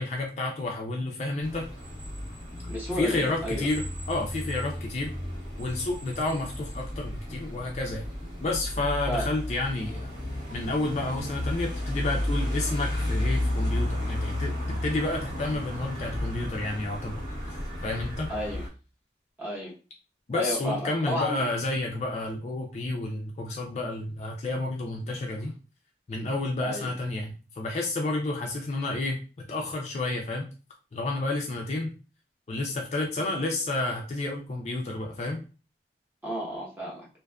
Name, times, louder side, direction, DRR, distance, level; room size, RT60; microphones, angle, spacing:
voice 1, 0.0-1.7 3.0-3.8 4.1-5.1 5.6-8.0 8.4-10.1 10.5-17.2 17.8-18.3 20.3-25.5 26.1-30.4 30.9-31.9 32.5-35.4, left 2 dB, 40° left, 1 dB, 0.3 m, -30 dB
sound 1, 1.4-18.7, left 1 dB, 90° right, 1.1 m, -33 dB
voice 2, 2.7-3.7 9.1-9.3 18.3-18.6 19.4-19.7 20.3-21.5 26.6-26.9 36.2-37.1, equal, 10° right, -5 dB, 0.8 m, -32 dB
2.5 x 2.4 x 2.2 m, 0.34 s
head